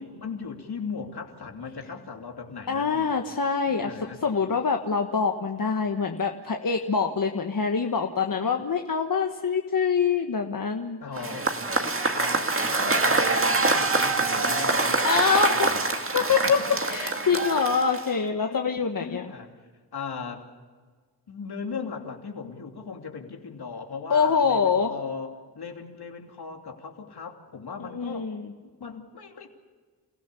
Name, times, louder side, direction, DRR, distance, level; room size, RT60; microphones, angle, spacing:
voice 1, 0.0-3.1 3.7-4.2 11.0-11.6 12.1-15.8 16.4-16.5 18.5-19.5 19.9-20.5 21.3-28.3 28.6-29.5, left 5 dB, 70° left, 3 dB, 3.0 m, -38 dB
voice 2, 2.7-3.9 4.2-11.0 15.0-16.6 16.9-19.2 24.1-24.9 27.8-28.5, left 5 dB, 55° left, 3 dB, 1.4 m, -25 dB
Cheering / Applause / Crowd, 11.2-18.2, right 3 dB, 30° right, 1.9 m, -25 dB
29.5 x 16.0 x 7.0 m, 1.5 s
cardioid pair, 65°, 40 cm